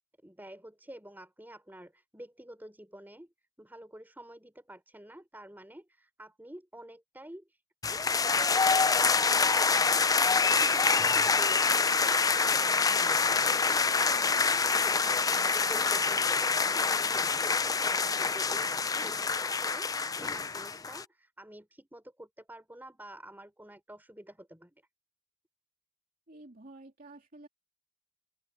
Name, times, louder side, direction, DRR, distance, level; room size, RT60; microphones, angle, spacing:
voice 1, 0.2-3.3 3.6-7.6 7.9-10.0 10.4-13.8 14.8-24.8, right 1 dB, 10° right, 4.4 m, -48 dB
sound 1, 7.8-21.0, left 5 dB, 20° left, 0.5 m, -26 dB
voice 2, 26.3-27.5, right 2 dB, 45° right, 2.7 m, -51 dB
open air
head